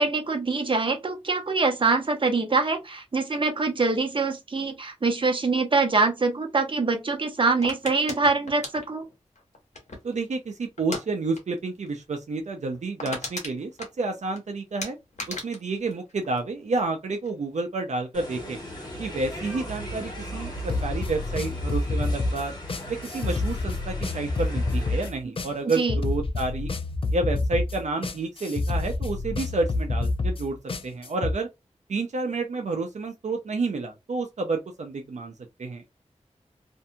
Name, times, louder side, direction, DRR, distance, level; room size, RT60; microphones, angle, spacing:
voice 1, 0.0-9.0 25.8-25.9, right 3 dB, 45° right, 0.7 m, -24 dB
sound 1, 7.6-10.2 10.8-11.1 11.3-11.6 11.9-12.0 12.4-12.5 12.7-14.4 14.8-16.8 17.1-17.6, left 2 dB, 75° left, 1.1 m, -37 dB
voice 2, 10.0-13.7 14.0-15.0 15.3-18.6 19.0-22.5 22.9-26.7 27.1-30.6 30.8-31.5 31.9-35.3 35.6-35.8, right 3 dB, 75° right, 0.5 m, -30 dB
sound 2, 18.1-25.1, equal, 35° left, 1.3 m, -38 dB
sound 3, 20.7-31.3, left 2 dB, 50° left, 0.4 m, -28 dB
2.7 x 2.6 x 2.2 m
wide cardioid pair, 70°, 12 cm